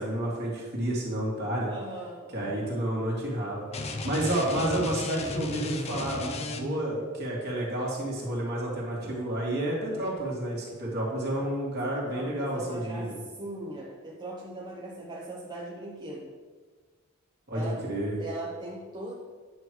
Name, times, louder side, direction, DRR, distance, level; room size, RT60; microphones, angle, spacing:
voice 1, 0.0-1.7 2.3-3.6 4.0-13.2 17.5-18.2, right 1 dB, 50° right, -4 dB, 2.3 m, -30 dB
voice 2, 1.7-2.6 11.3-11.5 11.9-13.1 13.4-16.3 17.5-17.8 18.2-19.1, right 2 dB, 20° right, -5 dB, 0.8 m, -40 dB
sound 1, 3.7-6.9, left 2 dB, 30° left, 0.5 m, -34 dB
9.5 x 3.2 x 6.2 m, 1.5 s
head